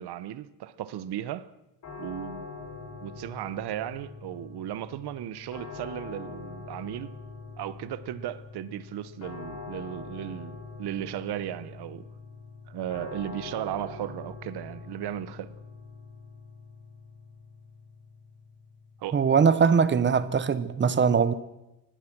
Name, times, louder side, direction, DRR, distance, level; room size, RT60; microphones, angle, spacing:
voice 1, 0.0-1.5 2.0-2.5 3.0-7.1 7.6-12.1 12.7-15.5 19.0-19.2, right 12 dB, 75° right, 1.2 m, -36 dB
sound 1, 1.8-20.7, left 4 dB, 50° left, 6.6 m, -44 dB
voice 2, 19.1-21.3, right 6 dB, 30° right, 1.0 m, -21 dB
24.5 x 18.5 x 6.1 m
cardioid pair, 175°, 39 cm